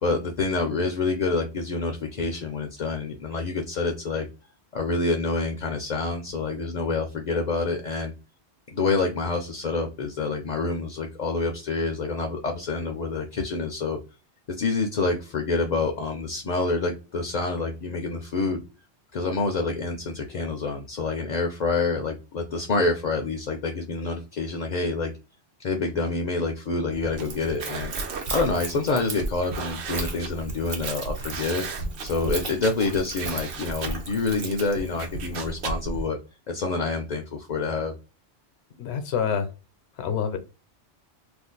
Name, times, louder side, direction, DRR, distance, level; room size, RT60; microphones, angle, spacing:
voice 1, 0.0-4.3 4.7-8.1 8.7-14.0 14.5-18.6 19.1-25.1 25.6-27.9 28.3-31.7 32.0-36.2 36.5-37.9, left 3 dB, 55° left, 4 dB, 0.5 m, -27 dB
sound 1, 26.9-36.1, right 3 dB, 80° right, 0.9 m, -35 dB
Splash splatter / Trickle dribble, 27.2-35.5, right 4 dB, 50° right, 0.8 m, -38 dB
voice 2, 38.8-39.5 40.0-40.4, left 7 dB, 75° left, 8 dB, 0.9 m, -26 dB
2.5 x 2.3 x 3.8 m, 0.32 s
omnidirectional pair, 1.1 m